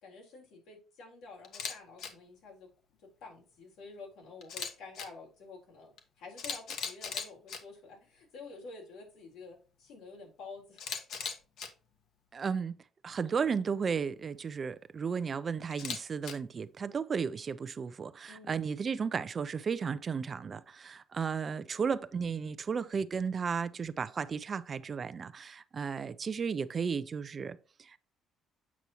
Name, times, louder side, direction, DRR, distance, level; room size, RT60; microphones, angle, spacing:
voice 1, 0.0-2.7 3.2-10.8 18.3-18.6, left 4 dB, 85° left, 3.8 m, -49 dB
Camera, 1.4-1.7 2.0-2.1 4.4-5.1 6.0-6.1 6.4-7.6 10.8-11.7 15.7-16.3, left 6 dB, 65° left, 1.3 m, -38 dB
voice 2, 12.3-12.8 13.0-28.0, right 6 dB, 30° right, 0.4 m, -34 dB
8.2 x 5.9 x 2.9 m
cardioid pair, 145°, 0 cm